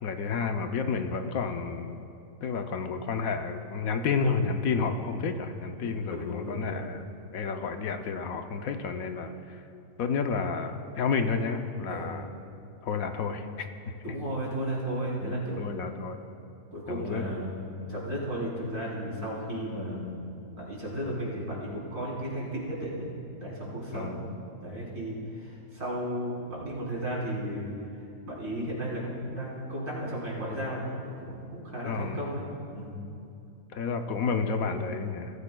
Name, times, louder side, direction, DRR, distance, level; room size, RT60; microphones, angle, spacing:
voice 1, 0.0-2.0 2.4-7.1 7.3-9.6 10.0-12.3 12.8-13.5 15.2-16.2 16.9-17.2 23.9-24.3 31.9-32.3 33.7-35.3, left 5 dB, 70° left, 6 dB, 1.1 m, -30 dB
voice 2, 5.8-6.9 11.9-12.1 14.0-15.6 16.7-20.3 20.6-23.1 23.4-24.2 24.6-27.7 28.2-32.9, equal, 60° right, -7 dB, 4.1 m, -34 dB
21.0 x 14.5 x 2.2 m, 2.6 s
omnidirectional pair, 1.5 m